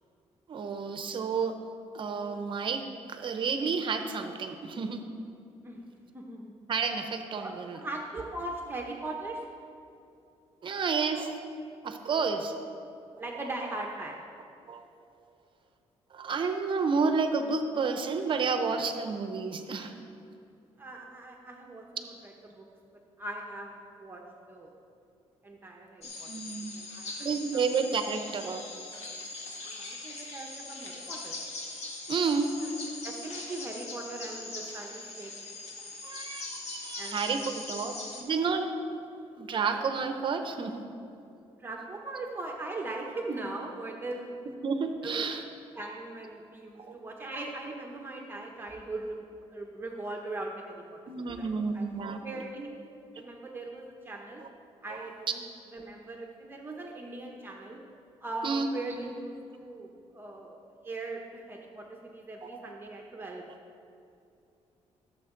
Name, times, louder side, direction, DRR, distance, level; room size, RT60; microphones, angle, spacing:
voice 1, 0.5-1.5 1.9-2.8 3.1-5.0 6.7-7.8 10.6-11.4 11.8-12.6 14.7-14.8 16.1-19.9 26.3-26.7 27.2-28.6 32.1-32.5 36.0-38.7 39.4-40.8 44.6-45.4 46.8-46.9 51.1-52.2 54.4-54.5 58.4-59.1 62.4-62.5, right 5 dB, 45° right, 7 dB, 0.7 m, -30 dB
voice 2, 6.1-6.5 7.4-9.4 13.2-14.2 20.8-22.7 23.2-24.2 24.5-24.7 25.4-26.3 26.6-27.6 29.6-31.3 32.6-32.7 33.0-35.3 37.0-37.9 41.5-44.4 45.0-45.4 45.7-51.0 51.2-51.9 52.2-52.7 53.1-54.4 54.8-55.4 55.7-57.8 58.2-60.5 60.8-63.4, right 2 dB, 20° right, 0 dB, 0.9 m, -40 dB
sound 1, 26.0-38.2, left 3 dB, 70° left, 1.5 m, -41 dB
16.5 x 7.2 x 3.8 m, 2.6 s
cardioid pair, 125°, 11 cm